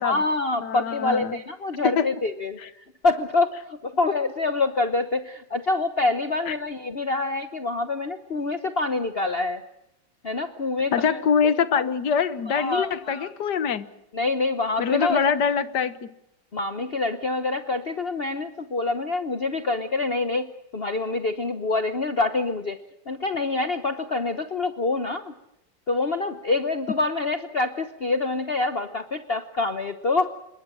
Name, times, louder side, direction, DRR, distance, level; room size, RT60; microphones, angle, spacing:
voice 1, 0.0-9.6 10.2-11.5 12.5-13.3 14.1-15.2 16.5-22.8 23.1-25.3 25.9-30.3, left 3 dB, 40° left, 1.1 m, -26 dB
voice 2, 0.6-1.4 1.8-2.1 6.5-6.6 10.9-13.9 14.8-16.1, left 6 dB, 65° left, 1.7 m, -24 dB
27.0 x 22.0 x 6.3 m
omnidirectional pair, 2.0 m